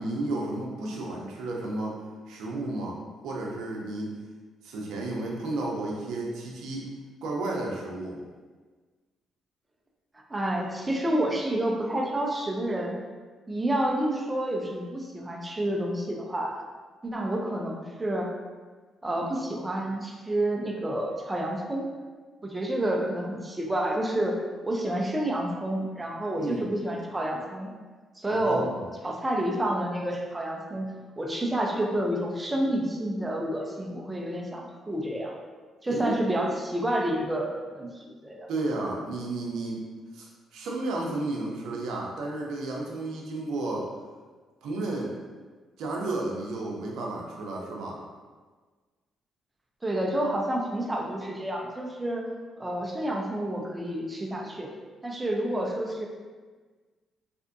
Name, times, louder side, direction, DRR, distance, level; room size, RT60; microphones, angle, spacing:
voice 1, 0.0-2.0 2.3-4.2 4.6-6.9 7.2-8.2 26.4-26.6 28.3-28.8 35.9-36.2 38.5-39.8 40.1-43.9 44.6-45.1 45.8-48.0, right 2 dB, 85° right, -2 dB, 0.6 m, -32 dB
voice 2, 10.3-13.0 13.5-16.6 17.0-18.3 19.0-21.9 22.4-24.4 24.6-27.7 28.2-28.7 29.0-35.3 35.8-38.5 49.8-52.3 52.6-54.7 55.0-56.1, right 1 dB, 15° right, 0 dB, 0.5 m, -29 dB
3.4 x 2.5 x 2.5 m, 1.4 s
cardioid pair, 90°, 0 cm